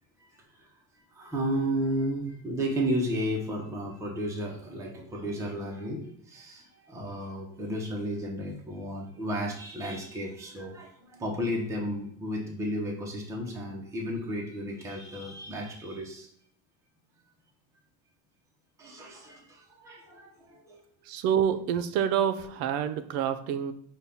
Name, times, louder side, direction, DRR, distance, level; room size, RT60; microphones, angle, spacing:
voice 1, 0.2-0.7 1.1-16.3 18.8-20.8, equal, 10° right, -2 dB, 0.6 m, -33 dB
voice 2, 21.1-23.7, right 8 dB, 75° right, 11 dB, 0.5 m, -27 dB
5.5 x 2.2 x 3.4 m, 0.67 s
cardioid pair, 150°, 36 cm